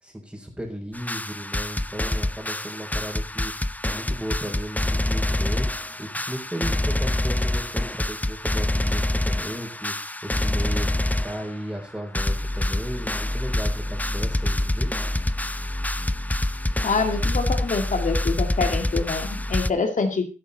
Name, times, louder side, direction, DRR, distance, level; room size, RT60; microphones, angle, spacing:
voice 1, 0.0-3.5 3.8-5.7 6.0-9.9 10.2-14.9, equal, 10° right, -3 dB, 4.1 m, -35 dB
sound 1, 0.9-11.6 11.9-12.0 12.1-19.7, left 1 dB, 10° left, 0.6 m, -26 dB
voice 2, 16.8-20.3, left 4 dB, 80° left, 5 dB, 2.4 m, -25 dB
12.0 x 11.5 x 4.2 m, 0.35 s
cardioid pair, 50°, 13 cm